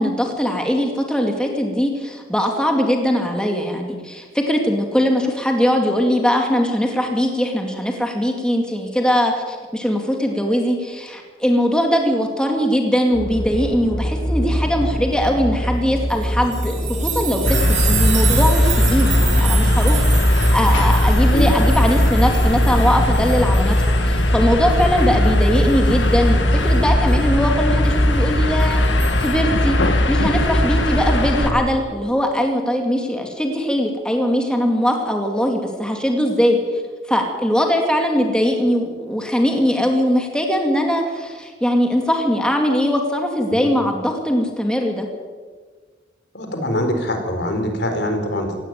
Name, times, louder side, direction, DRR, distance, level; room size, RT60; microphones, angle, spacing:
voice 1, 0.0-16.7 17.0-20.0 20.5-23.8 24.0-28.8 29.2-36.6 37.1-45.1, equal, 5° left, 2 dB, 2.4 m, -20 dB
sound 1, 13.1-31.5, equal, 25° left, 3.4 m, -25 dB
sound 2, 16.1-24.4 24.8-25.9 27.1-27.2 28.6-29.3, right 8 dB, 40° right, 3.8 m, -29 dB
sound 3, 17.4-31.5, left 1 dB, 85° left, 2.2 m, -18 dB
voice 2, 46.3-48.6, left 1 dB, 65° left, 5 dB, 4.1 m, -23 dB
17.5 x 17.0 x 9.1 m, 1.5 s
head